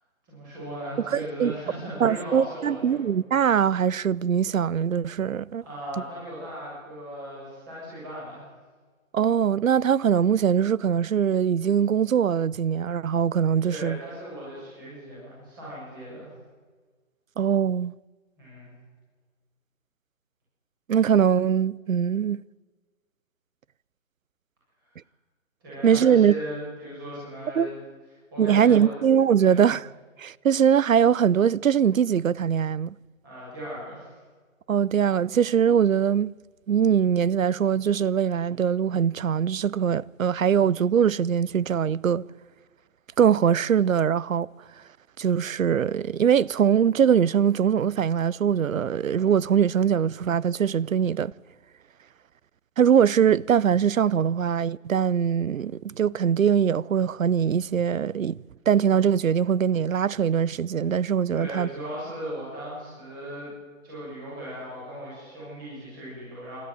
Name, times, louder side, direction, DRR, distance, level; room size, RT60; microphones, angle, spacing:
voice 1, 0.3-3.0 5.6-8.5 13.7-16.3 18.4-18.7 25.6-27.8 28.3-29.0 29.4-29.8 33.2-34.1 61.3-63.5 63.8-66.6, equal, 15° right, 7.4 m, -37 dB
voice 2, 1.1-1.5 2.0-5.6 9.1-14.0 17.4-17.9 20.9-22.4 25.8-26.3 27.6-27.7 28.4-29.9 30.2-32.9 34.7-36.3 36.7-42.2 43.2-44.5 45.2-51.3 52.8-58.4 58.7-61.7, right 8 dB, 70° right, 0.6 m, -22 dB
24.5 x 13.5 x 9.3 m
hypercardioid pair, 180°, 41 cm